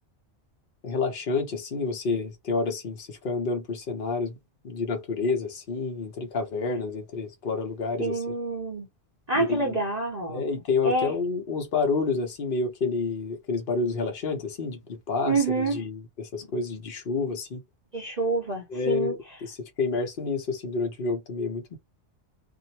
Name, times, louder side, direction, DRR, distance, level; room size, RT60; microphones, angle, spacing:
voice 1, 0.8-4.4 4.6-8.3 9.3-9.8 10.3-17.6 18.7-21.8, left 4 dB, 50° left, 0.9 m, -29 dB
voice 2, 8.0-8.9 9.3-10.5 10.8-11.1 15.3-15.8 17.9-19.1, right 3 dB, 40° right, 0.7 m, -27 dB
2.7 x 2.1 x 2.8 m
omnidirectional pair, 1.3 m